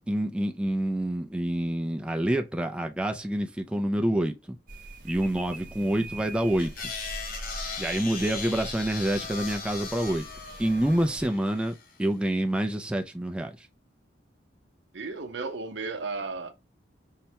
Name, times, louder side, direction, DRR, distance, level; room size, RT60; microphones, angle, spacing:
voice 1, 0.1-4.6 5.0-6.9 7.8-10.3 10.6-13.7, right 1 dB, 5° right, 0.3 m, -27 dB
sound 1, 4.7-11.3, right 2 dB, 50° right, 0.9 m, -43 dB
sound 2, 6.6-11.9, left 4 dB, 50° left, 0.8 m, -38 dB
voice 2, 14.9-16.5, right 4 dB, 75° right, 0.7 m, -35 dB
5.6 x 2.1 x 2.8 m
head